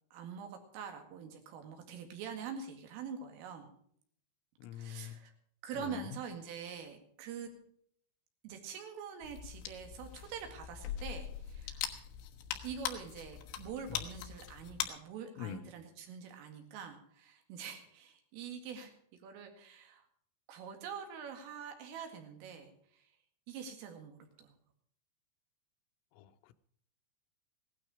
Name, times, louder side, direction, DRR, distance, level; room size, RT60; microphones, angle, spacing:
voice 1, 0.1-3.7 4.7-5.3 5.6-7.5 8.4-11.9 12.6-18.9 19.2-20.1 20.5-23.1 23.5-24.6, right 6 dB, 85° right, 5 dB, 4.7 m, -45 dB
voice 2, 4.6-5.2 5.7-6.2 13.9-14.0 15.4-15.6 26.1-26.5, left 9 dB, 90° left, 10 dB, 3.4 m, -44 dB
sound 1, 9.2-14.9, left 10 dB, 75° left, 3.6 m, -41 dB
17.0 x 12.5 x 4.9 m, 0.64 s
omnidirectional pair, 5.7 m